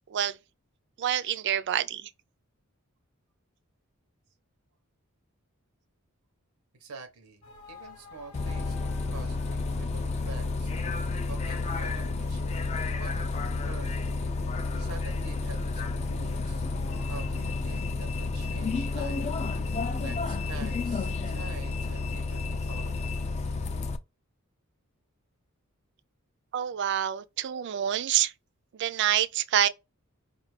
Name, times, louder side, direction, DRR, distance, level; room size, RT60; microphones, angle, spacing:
voice 1, 1.0-2.1 26.5-28.3 28.8-29.7, right 10 dB, 55° right, 0.3 m, -27 dB
voice 2, 6.8-7.4 7.7-10.7 11.3-13.9 14.8-16.6 17.1-23.2, right 4 dB, 85° right, 0.8 m, -47 dB
sound 1, 7.4-17.6, left 4 dB, 90° left, 0.8 m, -51 dB
Bus, 8.3-24.0, left 3 dB, 30° left, 0.3 m, -31 dB
5.0 x 2.4 x 3.1 m
head